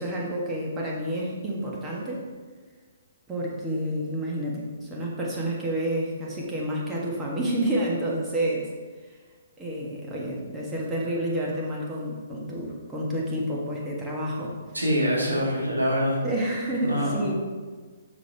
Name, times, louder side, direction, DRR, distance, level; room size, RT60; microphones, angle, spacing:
voice 1, 0.0-2.2 3.3-8.7 9.6-14.5 15.2-15.4 16.2-17.3, right 1 dB, 10° right, -4 dB, 1.5 m, -29 dB
voice 2, 14.7-16.2 16.8-17.2, equal, 80° right, -4 dB, 2.2 m, -24 dB
6.8 x 6.3 x 3.5 m, 1.4 s
figure-of-eight pair, 125°, 0 cm